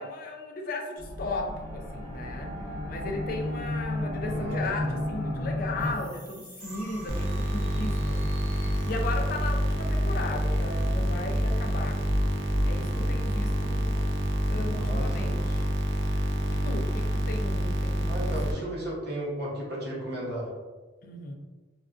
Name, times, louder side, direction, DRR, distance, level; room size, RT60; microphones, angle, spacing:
voice 1, 0.0-2.6 2.9-8.6 8.8-12.0 12.6-13.9 14.5-15.7 16.5-18.6 21.0-21.3, left 2 dB, 45° left, 3 dB, 0.3 m, -36 dB
sound 1, 1.0-17.2, left 1 dB, 15° right, 1.0 m, -34 dB
voice 2, 4.2-4.6 14.7-15.4 18.1-20.5, right 1 dB, 55° right, -5 dB, 0.8 m, -35 dB
sound 2, 7.1-18.5, equal, 75° right, 0.4 m, -28 dB
2.4 x 2.2 x 2.3 m, 1.3 s
head